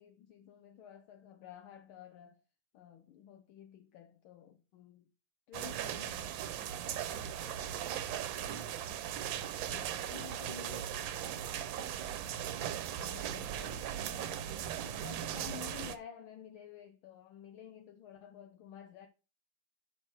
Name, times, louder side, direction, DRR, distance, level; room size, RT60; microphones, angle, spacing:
voice 1, 0.0-2.4 2.7-5.1 5.5-6.4 13.0-19.1, left 9 dB, 75° left, 1.5 m, -52 dB
sound 1, 5.5-16.0, right 10 dB, 70° right, 1.3 m, -38 dB
voice 2, 7.1-8.1 8.4-9.2 9.6-11.5 14.8-14.9, left 5 dB, 55° left, 1.9 m, -53 dB
6.2 x 5.8 x 4.5 m
omnidirectional pair, 2.4 m